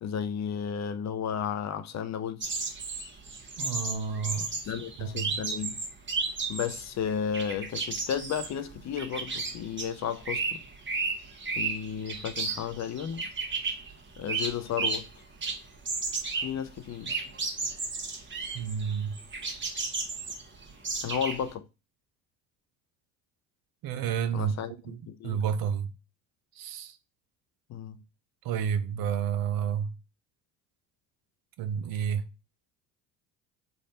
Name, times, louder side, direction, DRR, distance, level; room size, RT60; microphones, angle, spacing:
voice 1, 0.0-2.5 4.7-5.8 6.5-10.6 11.6-13.3 14.2-15.1 16.4-17.1 21.0-21.7 24.3-25.4 27.7-28.0, left 8 dB, 40° left, 0.6 m, -33 dB
sound 1, 2.4-6.9 7.1-15.1 15.4-21.5, right 4 dB, 25° right, 1.2 m, -33 dB
voice 2, 3.6-4.5 5.0-5.4 18.5-19.1 23.8-24.5 24.8-25.0 25.2-25.9 26.6-27.0 28.4-29.9 31.6-32.2, right 7 dB, 55° right, 0.7 m, -30 dB
3.3 x 2.4 x 4.1 m
hypercardioid pair, 75°, 42 cm